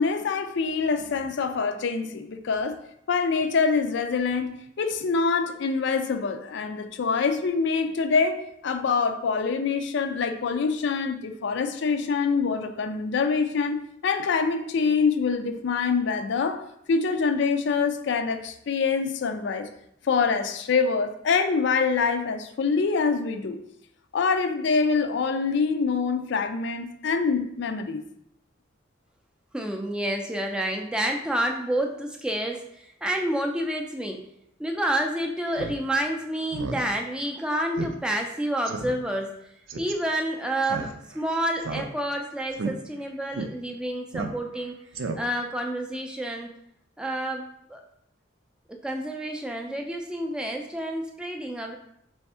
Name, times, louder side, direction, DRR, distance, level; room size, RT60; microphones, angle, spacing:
voice 1, 0.0-2.8 3.1-19.7 20.0-23.6 24.1-28.0, left 5 dB, 65° left, 8 dB, 0.4 m, -25 dB
voice 2, 29.5-34.2 34.6-39.3 39.8-44.7 45.2-46.5 47.0-47.8 48.8-51.8, right 1 dB, 5° right, 2 dB, 0.4 m, -29 dB
Speech synthesizer, 35.5-35.8 36.1-36.2 36.5-36.8 37.2-37.3 37.8-37.9 38.2-38.3 38.7-38.9 39.7-39.9 40.6-41.2 41.6-42.2 42.5-42.7 43.3-43.5 44.1-44.6 44.9-45.5, right 3 dB, 85° right, 0.5 m, -32 dB
3.5 x 3.4 x 4.2 m, 0.74 s
head